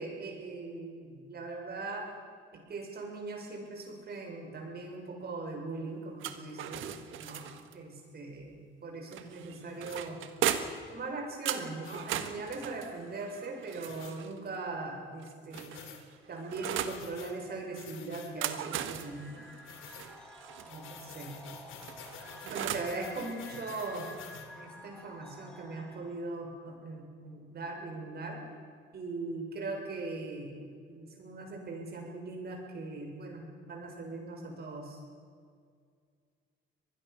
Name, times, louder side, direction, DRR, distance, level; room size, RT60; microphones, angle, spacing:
voice 1, 0.0-2.1 2.5-6.9 7.2-7.5 7.7-10.2 10.9-15.7 16.3-19.5 20.7-21.3 22.4-24.1 24.5-28.4 28.9-30.6 30.9-35.0, right 3 dB, 55° right, 2 dB, 6.9 m, -40 dB
sound 1, 6.2-7.8 9.1-10.9 11.5-14.4 15.2-17.0 18.2-20.7 21.8-23.0, right 10 dB, 85° right, 1.5 m, -37 dB
sound 2, 9.9-10.0 10.5-10.7 11.8-12.0 13.9-14.1 15.5-16.0 16.7-17.3 17.7-18.3 19.6-20.1 20.7-24.5, left 7 dB, 85° left, 3.0 m, -49 dB
sound 3, 18.8-26.4, left 1 dB, 5° left, 4.6 m, -51 dB
25.0 x 20.0 x 7.0 m, 2.1 s
cardioid pair, 90°, 20 cm